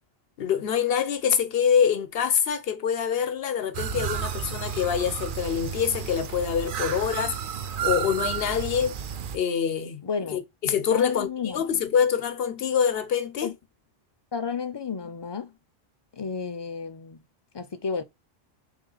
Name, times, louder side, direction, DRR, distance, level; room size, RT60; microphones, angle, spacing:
voice 1, 0.4-7.4 7.8-8.9 9.3-10.0 10.3-13.5, left 8 dB, 70° left, 0.9 m, -25 dB
sound 1, 3.7-9.4, right 8 dB, 60° right, 0.7 m, -32 dB
voice 2, 10.0-10.4 10.9-11.6 13.4-13.6 14.3-15.5 16.1-17.2 17.5-18.0, left 5 dB, 35° left, 0.4 m, -32 dB
3.5 x 3.5 x 3.9 m
omnidirectional pair, 1.0 m